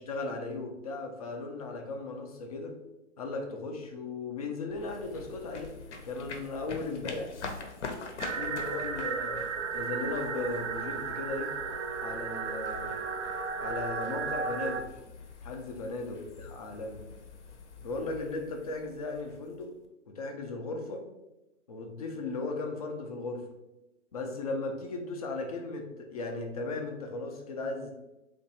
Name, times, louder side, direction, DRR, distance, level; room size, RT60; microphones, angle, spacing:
voice 1, 0.1-2.7 3.2-5.7 6.0-7.3 8.3-11.5 12.0-12.9 13.6-14.8 15.4-17.0 17.8-19.7 20.1-21.0 21.7-23.4 24.1-27.9, left 3 dB, 30° left, 3 dB, 0.4 m, -36 dB
sound 1, 4.7-19.9, left 4 dB, 60° left, 0.7 m, -45 dB
sound 2, 8.2-14.8, right 5 dB, 65° right, 0.6 m, -34 dB
2.9 x 2.5 x 4.1 m, 0.97 s
figure-of-eight pair, 130°, 39 cm